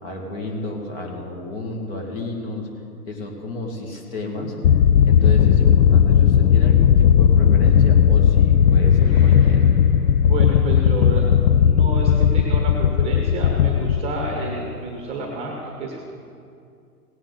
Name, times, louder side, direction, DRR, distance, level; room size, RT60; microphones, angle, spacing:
voice 1, 0.0-2.7 3.1-4.6 5.0-9.7, left 2 dB, 35° left, 1 dB, 2.1 m, -31 dB
sound 1, 4.6-14.7, left 8 dB, 85° left, 0.6 m, -16 dB
sound 2, 8.1-11.1, left 1 dB, 15° left, 0.6 m, -36 dB
voice 2, 10.2-16.0, right 3 dB, 15° right, 0 dB, 1.2 m, -30 dB
17.5 x 8.8 x 4.0 m, 2.4 s
hypercardioid pair, 145°, 48 cm